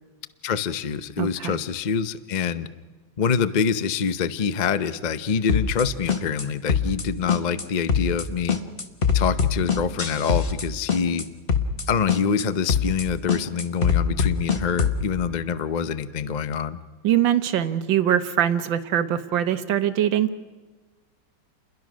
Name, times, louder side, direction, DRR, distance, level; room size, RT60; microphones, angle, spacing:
voice 1, 0.4-2.7 3.2-8.6 9.1-11.2 11.9-16.8, left 6 dB, 55° left, 12 dB, 0.5 m, -25 dB
voice 2, 1.2-1.6 17.0-20.3, right 10 dB, 85° right, 10 dB, 1.7 m, -22 dB
sound 1, 5.5-5.8 6.1-6.4 6.7-7.0 7.3-7.6 7.9-8.2 8.5-10.6 10.9-11.2 11.5-11.8 12.1-12.4 12.7-13.0 13.3-15.0, left 6 dB, 35° left, 1.3 m, -22 dB
30.0 x 21.5 x 6.3 m, 1.3 s
omnidirectional pair, 2.0 m